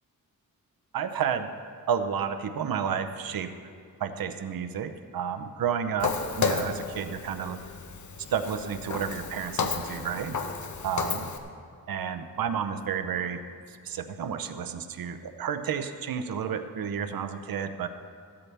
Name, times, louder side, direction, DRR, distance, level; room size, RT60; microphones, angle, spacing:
voice 1, 0.9-1.5 1.9-3.5 4.0-7.6 8.3-10.4 10.8-11.3 11.9-13.4 13.8-17.9, right 7 dB, 75° right, 9 dB, 0.8 m, -31 dB
Walk footsteps, 6.0-11.4, left 5 dB, 55° left, 0.9 m, -32 dB
15.0 x 12.5 x 3.4 m, 2.3 s
wide cardioid pair, 135°, 35 cm